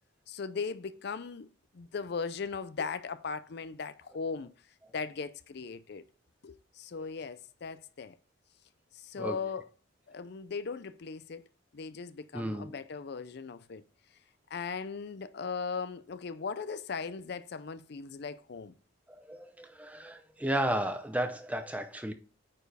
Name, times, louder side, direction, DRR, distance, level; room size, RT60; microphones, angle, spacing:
voice 1, 0.3-1.5 1.7-4.5 4.9-6.0 6.4-8.2 8.9-9.7 10.1-11.5 11.7-13.8 14.5-18.7, left 5 dB, 55° left, 0.4 m, -38 dB
voice 2, 12.3-12.7 19.3-22.1, right 1 dB, 5° right, 0.6 m, -33 dB
8.8 x 4.6 x 3.4 m
head